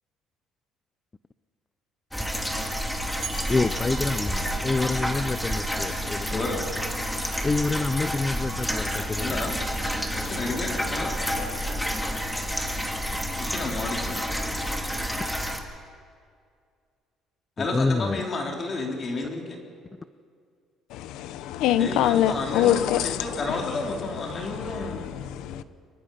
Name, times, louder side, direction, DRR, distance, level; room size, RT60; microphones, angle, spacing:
sound 1, 2.1-15.6, equal, 5° left, 2.4 m, -29 dB
sound 2, 3.2-5.3, right 5 dB, 40° right, 6.2 m, -42 dB
voice 1, 3.5-6.4 7.4-9.5 11.9-12.1 17.6-18.2, left 3 dB, 20° left, 0.6 m, -27 dB
voice 2, 6.3-6.7 9.2-9.6 10.1-11.1 13.4-14.2 17.6-19.6 21.8-25.1, left 3 dB, 40° left, 4.2 m, -31 dB
voice 3, 20.9-23.9 24.2-25.6, left 11 dB, 80° left, 1.0 m, -25 dB
24.5 x 23.0 x 5.9 m
cardioid pair, 105°, 0 cm